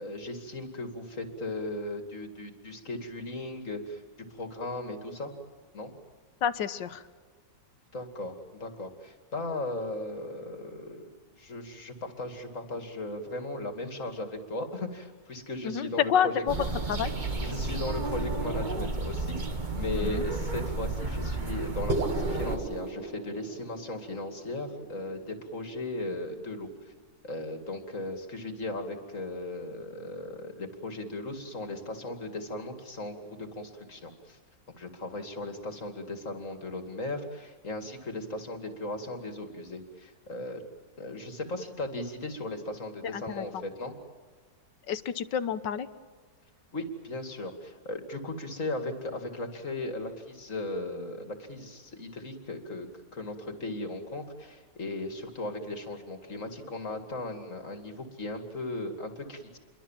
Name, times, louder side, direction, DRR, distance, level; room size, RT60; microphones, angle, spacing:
voice 1, 0.0-4.0 4.3-5.3 5.7-5.9 7.9-16.4 17.4-19.4 19.7-26.9 27.2-34.4 34.8-40.6 41.0-43.9 46.7-59.6, left 2 dB, 45° left, 5 dB, 2.9 m, -37 dB
voice 2, 6.4-7.0 15.6-16.6 16.9-17.1 19.9-20.3 43.1-43.6 44.9-45.9, left 8 dB, 80° left, 13 dB, 1.7 m, -29 dB
sound 1, 16.5-22.6, right 2 dB, 25° right, 1.6 m, -32 dB
sound 2, 21.9-26.3, right 3 dB, 90° right, 2.7 m, -36 dB
28.5 x 23.5 x 7.5 m, 1.5 s
omnidirectional pair, 1.9 m